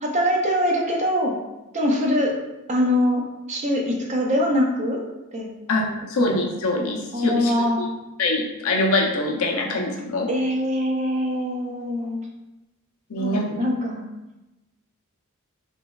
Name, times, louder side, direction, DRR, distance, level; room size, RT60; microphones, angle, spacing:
voice 1, 0.0-1.3 1.7-2.3 2.7-3.2 3.5-5.0 5.3-5.5 5.8-5.9 7.1-7.9 10.3-12.2 13.2-14.0, left 1 dB, 30° right, 0 dB, 0.5 m, -23 dB
voice 2, 5.7-7.9 8.2-10.3 13.1-13.5, left 2 dB, 70° left, 0 dB, 0.6 m, -24 dB
3.2 x 3.0 x 2.3 m, 0.99 s
head